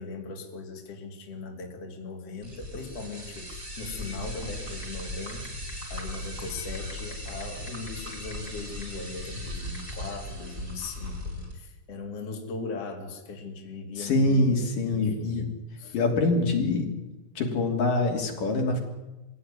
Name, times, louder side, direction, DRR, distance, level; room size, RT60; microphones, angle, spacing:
voice 1, 0.0-5.6 5.9-14.5 14.8-15.5 15.8-16.0, left 4 dB, 50° left, 2 dB, 3.7 m, -39 dB
sound 1, 2.4-11.5, left 1 dB, 20° right, 6.5 m, -38 dB
sound 2, 4.8-4.9 5.3-5.7 6.0-6.1 6.7-8.5 8.8-8.9 9.7-9.9, left 3 dB, 30° left, 3.5 m, -43 dB
voice 2, 14.0-15.5 15.9-16.9 17.4-18.8, left 2 dB, 80° left, 1 dB, 4.8 m, -24 dB
24.0 x 16.5 x 9.7 m, 1.1 s
omnidirectional pair, 3.7 m